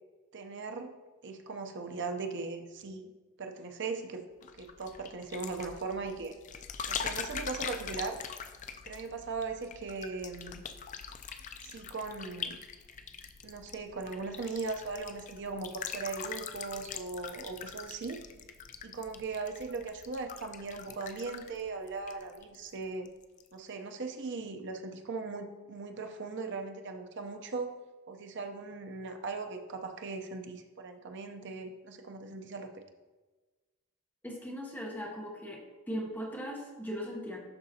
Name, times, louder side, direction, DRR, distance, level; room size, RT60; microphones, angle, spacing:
voice 1, 0.3-0.9 1.2-3.1 3.4-6.3 6.9-8.2 8.8-10.6 11.6-12.6 13.4-18.2 18.8-23.1 23.5-27.7 28.1-32.8, right 4 dB, 55° right, 5 dB, 0.6 m, -39 dB
sound 1, 4.4-22.8 23.0-23.5, left 7 dB, 35° left, 0.3 m, -43 dB
voice 2, 34.2-35.6 35.9-37.4, equal, 10° left, -1 dB, 0.9 m, -38 dB
11.5 x 3.9 x 2.8 m, 1.3 s
head